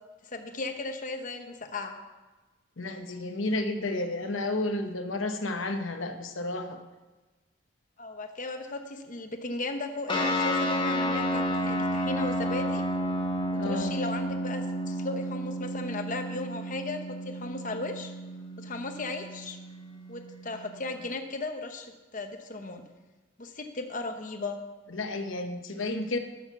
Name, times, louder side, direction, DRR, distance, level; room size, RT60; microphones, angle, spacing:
voice 1, 0.2-1.9 8.0-12.8 13.6-17.0 17.2-18.1 18.6-19.6 20.1-22.8 23.4-24.6, left 2 dB, 40° left, 6 dB, 0.9 m, -36 dB
voice 2, 2.8-6.8 13.5-13.9 24.9-26.2, left 2 dB, 70° left, 6 dB, 0.9 m, -31 dB
sound 1, 10.1-21.0, equal, 25° left, 1.5 m, -31 dB
12.5 x 6.5 x 6.9 m, 1.2 s
head